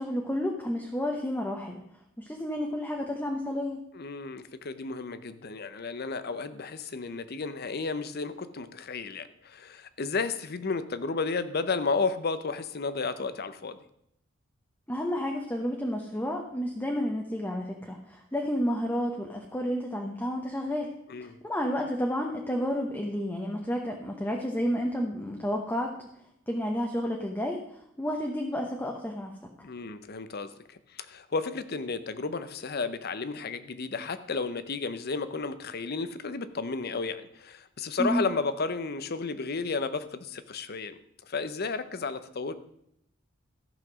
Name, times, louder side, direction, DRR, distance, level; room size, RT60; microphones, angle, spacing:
voice 1, 0.0-1.8 2.2-3.8 14.9-20.9 21.2-25.9 26.5-27.6 28.0-29.4 38.0-38.2, equal, 10° left, 1 dB, 0.9 m, -31 dB
voice 2, 3.9-13.8 21.1-21.4 29.6-41.0 41.3-42.5, left 4 dB, 50° left, 13 dB, 0.7 m, -33 dB
13.5 x 5.8 x 6.2 m, 0.76 s
head